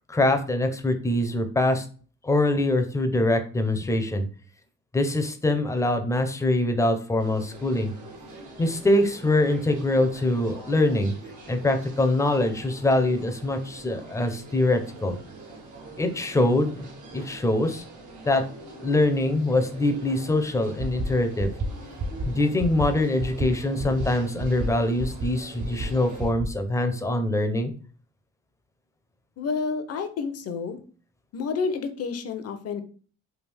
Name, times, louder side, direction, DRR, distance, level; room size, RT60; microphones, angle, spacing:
voice 1, 0.1-1.8 2.2-4.3 4.9-7.9 8.6-11.1 11.5-15.2 16.0-16.8 17.1-17.8 18.3-18.4 18.8-21.5 22.3-27.7, left 1 dB, 10° left, 6 dB, 0.5 m, -23 dB
sound 1, 7.2-26.3, right 2 dB, 75° right, 1.2 m, -44 dB
sound 2, 20.8-21.1 21.4-21.7 22.0-22.3 22.6-22.9 23.2-23.5 23.8-24.1 24.4-24.7 25.0-25.3 25.6-25.9 26.2-26.5, right 2 dB, 45° right, 0.6 m, -29 dB
voice 2, 29.4-30.8 31.3-32.8, left 5 dB, 55° left, 9 dB, 0.6 m, -29 dB
3.4 x 2.4 x 3.3 m, 0.41 s
cardioid pair, 90°, 30 cm